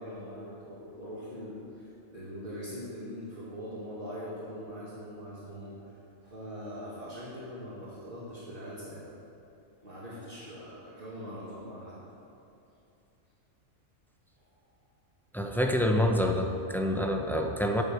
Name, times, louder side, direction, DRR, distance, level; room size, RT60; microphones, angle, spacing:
voice 1, 0.0-5.7 6.2-9.0 9.8-12.0, equal, 45° right, -10 dB, 2.4 m, -42 dB
voice 2, 15.3-17.8, left 1 dB, ahead, 2 dB, 0.6 m, -27 dB
11.0 x 6.4 x 7.7 m, 2.8 s
omnidirectional pair, 1.3 m